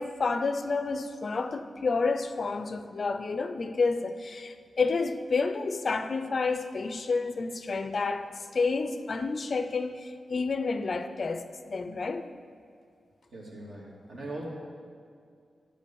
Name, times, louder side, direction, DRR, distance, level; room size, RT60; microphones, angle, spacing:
voice 1, 0.0-12.3, left 4 dB, 45° left, 0.4 m, -30 dB
voice 2, 13.3-14.4, right 2 dB, 70° right, 2.2 m, -40 dB
9.8 x 5.2 x 6.9 m
wide cardioid pair, 135°, 0 cm